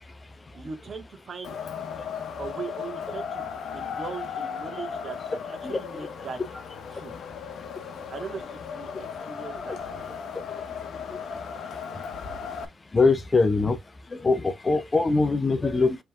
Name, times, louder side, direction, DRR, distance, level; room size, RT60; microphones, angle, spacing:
voice 1, 0.5-1.6 2.4-6.4 6.9-7.1 8.1-8.9 9.2-9.8, right 5 dB, 45° right, 1.2 m, -39 dB
Wind, 1.4-12.7, left 6 dB, 65° left, 0.7 m, -36 dB
voice 2, 12.9-13.8 14.1-16.0, left 3 dB, 25° left, 0.6 m, -22 dB
5.4 x 3.1 x 2.2 m
cardioid pair, 90°, 0 cm